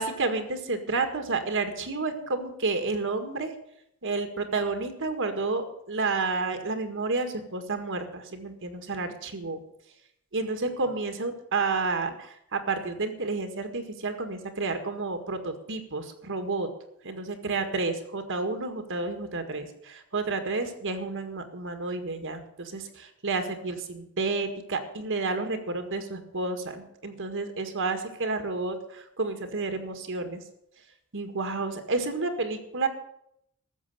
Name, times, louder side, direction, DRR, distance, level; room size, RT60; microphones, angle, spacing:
voice 1, 0.0-3.5 4.0-9.6 10.3-16.7 17.0-30.4 31.1-32.9, right 3 dB, 60° right, 7 dB, 1.9 m, -30 dB
14.0 x 7.7 x 9.3 m, 0.75 s
head